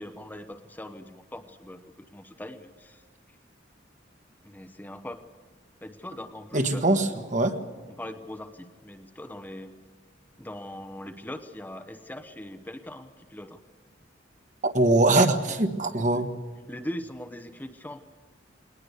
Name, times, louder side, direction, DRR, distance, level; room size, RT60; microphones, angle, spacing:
voice 1, 0.0-3.0 4.4-5.2 5.8-7.0 8.0-9.7 10.4-13.6 16.0-16.2 16.7-18.0, left 1 dB, 10° left, 6 dB, 0.9 m, -41 dB
voice 2, 6.5-7.6 14.6-16.3, right 2 dB, 40° right, 6 dB, 1.5 m, -22 dB
20.5 x 19.5 x 8.2 m, 1.4 s
head